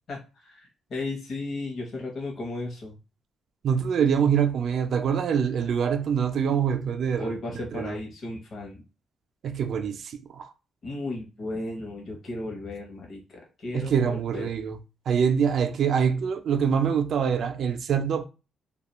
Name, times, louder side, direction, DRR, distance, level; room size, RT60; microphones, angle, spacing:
voice 1, 0.1-3.0 7.2-8.8 10.8-14.5, left 2 dB, 50° left, 0.8 m, -35 dB
voice 2, 3.6-7.3 7.7-8.0 9.4-10.5 13.7-14.8 15.1-18.2, right 7 dB, 60° right, 0.3 m, -25 dB
2.3 x 2.2 x 2.9 m
cardioid pair, 100°, 0 cm